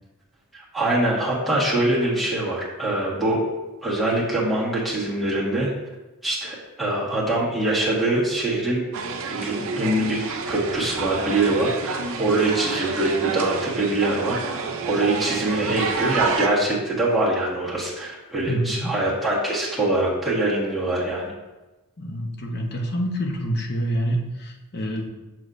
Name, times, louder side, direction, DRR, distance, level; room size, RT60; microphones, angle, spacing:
voice 1, 0.5-3.4 3.8-5.7 6.2-8.8 9.2-10.2 10.5-21.3, right 2 dB, ahead, -8 dB, 1.5 m, -23 dB
sound 1, 8.9-16.5, right 4 dB, 65° right, 0.6 m, -29 dB
voice 2, 18.5-18.9 22.0-25.1, equal, 50° left, 2 dB, 0.8 m, -27 dB
6.2 x 6.1 x 2.6 m, 1.1 s
head